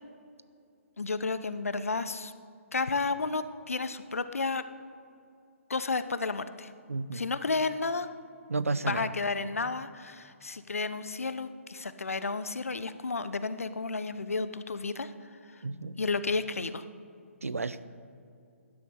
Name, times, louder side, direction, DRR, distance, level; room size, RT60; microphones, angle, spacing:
voice 1, 1.0-2.3 2.7-4.6 5.7-6.7 7.1-8.1 8.8-15.1 15.5-15.6 16.0-16.9, left 3 dB, 70° left, 13 dB, 0.9 m, -32 dB
voice 2, 6.9-7.2 8.5-9.1 15.6-16.0 17.4-17.8, right 3 dB, 75° right, 15 dB, 0.8 m, -32 dB
16.0 x 11.0 x 6.7 m, 2.6 s
figure-of-eight pair, 135°, 8 cm